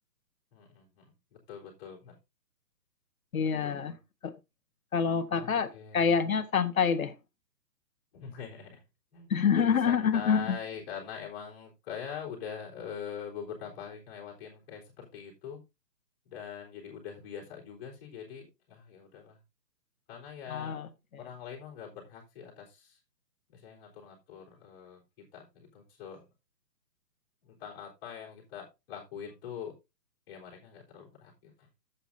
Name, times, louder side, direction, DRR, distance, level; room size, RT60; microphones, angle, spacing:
voice 1, 0.5-2.2 3.6-3.9 5.3-6.1 8.1-8.8 9.1-15.6 16.3-19.4 20.1-20.8 21.1-23.0 23.5-25.0 25.3-26.2 27.4-29.7 30.3-31.5, left 7 dB, 15° left, 3.5 m, -43 dB
voice 2, 3.3-4.0 4.2-4.3 4.9-7.1 9.3-10.6 20.5-20.9, left 6 dB, 55° left, 1.3 m, -27 dB
13.0 x 8.2 x 2.6 m
hypercardioid pair, 170°, 50 cm